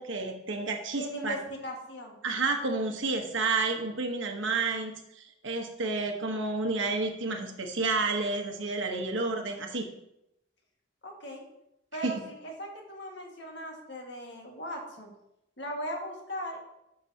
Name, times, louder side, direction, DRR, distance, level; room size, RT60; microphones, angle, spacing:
voice 1, 0.0-1.4 2.2-9.8 12.0-12.2, right 3 dB, 75° right, 4 dB, 1.2 m, -30 dB
voice 2, 1.0-2.2 11.0-11.4 11.9-15.1 15.6-16.6, equal, 60° left, 1 dB, 1.7 m, -38 dB
11.0 x 6.9 x 2.8 m, 0.85 s
head